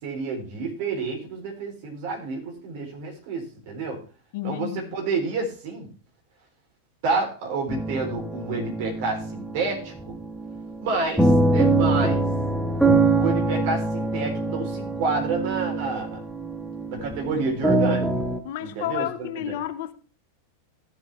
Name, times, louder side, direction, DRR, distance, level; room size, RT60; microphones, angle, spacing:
voice 1, 0.0-4.0 4.4-5.9 7.0-10.2 10.8-12.2 13.2-16.2 16.9-18.1 18.6-19.5, right 4 dB, 50° right, 3.8 m, -29 dB
voice 2, 4.3-4.9 18.4-19.9, left 13 dB, 50° left, 0.8 m, -31 dB
sound 1, 7.7-18.4, right 2 dB, ahead, 1.0 m, -24 dB
15.0 x 7.3 x 3.4 m
figure-of-eight pair, 90°, 0 cm